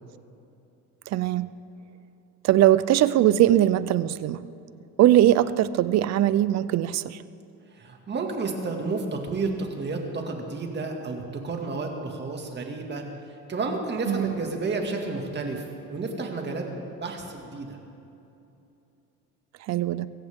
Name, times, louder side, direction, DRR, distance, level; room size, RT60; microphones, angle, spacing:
voice 1, 1.1-1.5 2.4-4.4 5.0-7.2 14.1-14.3 19.7-20.1, right 13 dB, 55° right, 16 dB, 0.6 m, -21 dB
voice 2, 7.7-13.0 13.5-15.6 15.9-17.8, right 3 dB, 35° right, 2 dB, 2.2 m, -31 dB
22.0 x 16.0 x 3.7 m, 2.8 s
cardioid pair, 125°, 33 cm